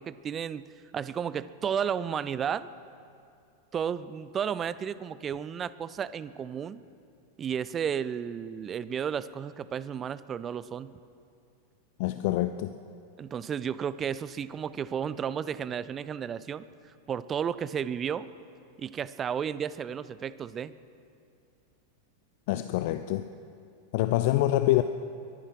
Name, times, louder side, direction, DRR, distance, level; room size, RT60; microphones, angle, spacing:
voice 1, 0.0-2.7 3.7-6.8 7.4-10.9 13.2-16.7 17.1-18.3 18.8-20.7, right 8 dB, 25° right, 17 dB, 0.4 m, -33 dB
voice 2, 12.0-12.8 22.5-23.3 23.9-24.8, left 15 dB, 50° left, 11 dB, 0.4 m, -26 dB
23.0 x 9.9 x 6.0 m, 2.5 s
figure-of-eight pair, 90°, 0 cm